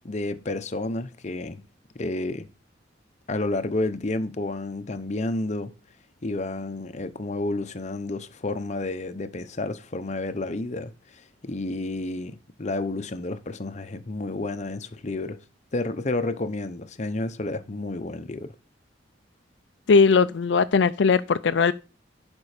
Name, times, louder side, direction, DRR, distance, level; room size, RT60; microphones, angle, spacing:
voice 1, 0.0-1.6 2.0-2.5 3.3-5.7 6.2-10.9 11.4-15.4 15.7-18.5, left 2 dB, 40° left, 0.8 m, -30 dB
voice 2, 19.9-21.7, left 5 dB, 70° left, 0.4 m, -19 dB
11.5 x 5.3 x 4.9 m
head